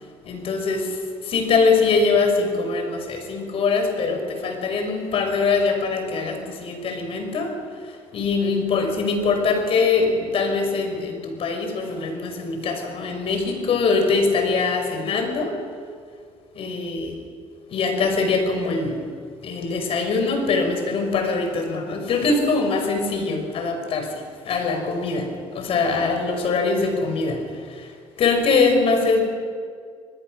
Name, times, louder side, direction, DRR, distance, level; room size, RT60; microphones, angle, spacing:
voice 1, 0.3-7.6 7.8-15.6 16.6-17.2 17.7-19.0 19.4-29.3, left 4 dB, 60° left, 5 dB, 5.2 m, -23 dB
27.5 x 20.5 x 6.3 m, 2.1 s
supercardioid pair, 85°, 11 cm